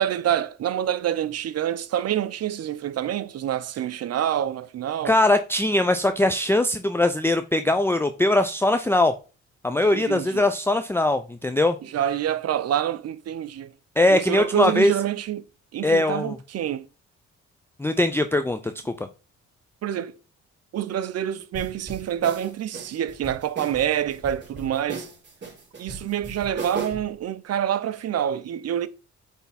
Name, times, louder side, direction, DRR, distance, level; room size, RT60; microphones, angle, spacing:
voice 1, 0.0-5.2 9.9-10.4 11.8-13.7 14.1-15.4 15.7-16.9 19.8-20.2 20.7-25.1 25.8-28.9, right 10 dB, 55° right, 0.7 m, -27 dB
voice 2, 5.0-9.1 9.6-11.8 14.0-14.9 15.8-16.4 17.8-19.1, left 1 dB, 10° left, 0.5 m, -21 dB
sound 1, 21.5-27.1, right 3 dB, 35° right, 3.7 m, -37 dB
8.4 x 3.5 x 4.1 m
cardioid pair, 90°, 30 cm